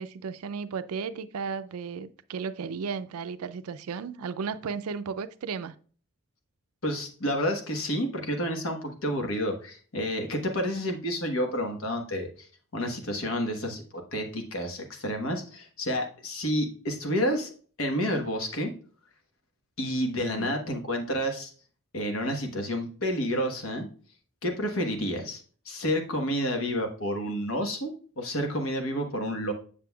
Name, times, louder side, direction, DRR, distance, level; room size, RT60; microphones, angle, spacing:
voice 1, 0.0-5.7 20.1-20.6, right 5 dB, 80° right, 0.4 m, -34 dB
voice 2, 6.8-12.5 12.7-17.5 17.8-18.7 19.8-21.5 21.9-23.9 24.4-29.5, equal, 65° left, 1.2 m, -30 dB
7.6 x 6.6 x 2.3 m
head